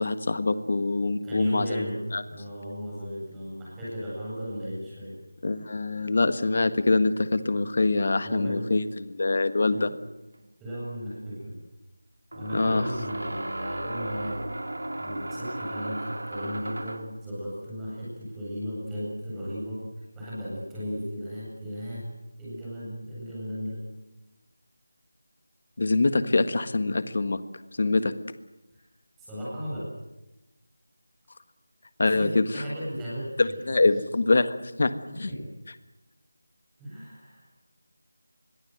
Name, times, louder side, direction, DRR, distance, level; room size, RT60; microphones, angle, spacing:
voice 1, 0.0-1.8 2.1-2.2 5.4-9.9 12.5-12.9 25.8-27.4 27.8-28.1 32.0-32.4 33.4-34.5 34.8-34.9 35.2-35.3, left 3 dB, 40° left, 12 dB, 1.6 m, -24 dB
voice 2, 1.2-2.0 2.2-5.1 8.2-8.6 9.7-9.9 10.6-11.6 12.3-14.4 15.0-19.8 20.2-22.0 22.4-23.8 28.7-28.8 29.2-29.9 32.0-32.3 32.5-33.6 33.8-34.0 35.3-35.4 36.8-37.5, equal, 5° right, -9 dB, 8.0 m, -35 dB
sound 1, 10.4-10.5 12.3-17.2, right 1 dB, 85° right, 3.4 m, -35 dB
26.0 x 22.5 x 8.0 m, 0.98 s
figure-of-eight pair, 175°, 0 cm